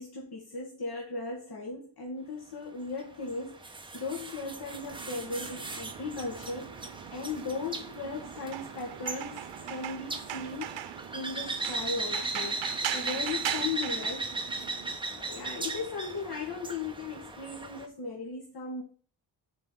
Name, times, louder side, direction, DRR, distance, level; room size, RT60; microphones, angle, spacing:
voice 1, 0.0-9.4 9.7-12.6 12.9-14.8 15.1-18.8, left 4 dB, 60° left, -2 dB, 2.1 m, -37 dB
sound 1, 3.0-17.9, right 2 dB, 10° right, 0.9 m, -38 dB
sound 2, 4.9-15.0, right 12 dB, 85° right, 0.8 m, -40 dB
7.5 x 5.1 x 7.2 m, 0.40 s
wide cardioid pair, 175°, 43 cm